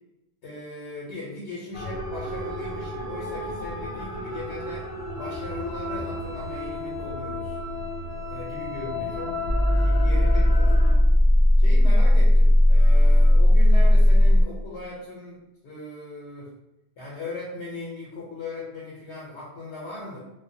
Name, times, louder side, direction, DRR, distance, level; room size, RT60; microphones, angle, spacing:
voice 1, 0.4-7.6 8.3-9.3 9.6-10.7 11.6-16.5 17.0-20.2, left 2 dB, 90° left, -6 dB, 1.0 m, -38 dB
sound 1, 1.7-10.9, left 2 dB, 60° left, 0.7 m, -33 dB
sound 2, 9.5-14.4, left 1 dB, 65° right, 0.8 m, -16 dB
2.3 x 2.1 x 2.6 m, 0.93 s
omnidirectional pair, 1.1 m